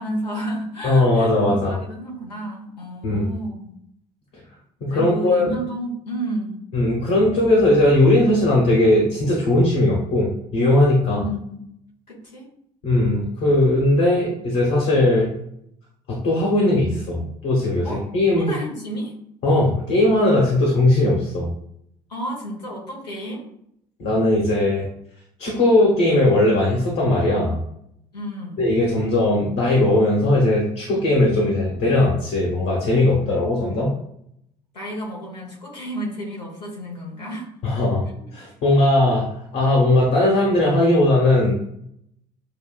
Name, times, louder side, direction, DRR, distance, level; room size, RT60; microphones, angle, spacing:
voice 1, 0.0-3.7 4.9-6.7 11.1-11.6 12.1-12.5 17.8-18.1 18.3-19.1 22.1-23.4 28.1-28.6 34.7-37.5, right 1 dB, 85° left, -2 dB, 1.1 m, -31 dB
voice 2, 0.8-1.8 3.0-3.2 4.8-5.5 6.7-11.2 12.8-15.3 16.1-18.5 19.4-21.5 24.0-24.9 25.4-27.6 28.6-33.9 37.6-38.0 38.3-39.3 39.5-41.5, left 1 dB, 60° left, -3 dB, 1.4 m, -18 dB
7.2 x 2.5 x 2.4 m, 0.74 s
figure-of-eight pair, 55°, 21 cm